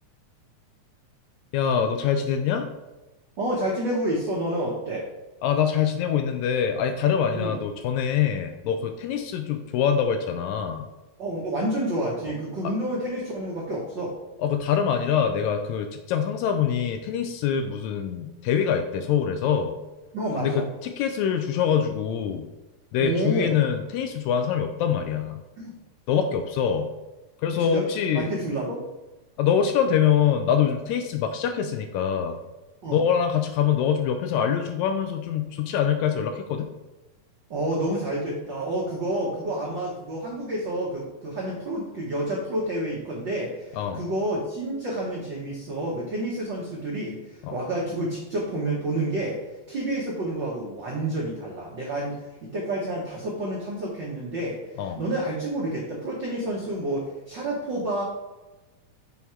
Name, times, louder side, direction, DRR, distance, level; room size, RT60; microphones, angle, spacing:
voice 1, 1.5-2.7 5.4-10.9 12.6-12.7 14.4-19.8 20.4-22.5 22.9-25.4 26.1-26.9 27.4-28.3 29.4-32.4 32.9-36.7 43.8-44.0 47.4-47.5 54.8-55.0, left 8 dB, 80° left, 6 dB, 1.7 m, -24 dB
voice 2, 3.4-5.1 7.3-7.5 11.2-14.1 20.1-20.6 23.0-23.6 25.6-25.7 27.5-27.8 28.1-28.8 32.8-33.0 37.5-49.4 49.7-58.0, right 1 dB, 75° right, -3 dB, 1.0 m, -29 dB
6.3 x 3.5 x 4.3 m, 1.1 s
omnidirectional pair, 3.5 m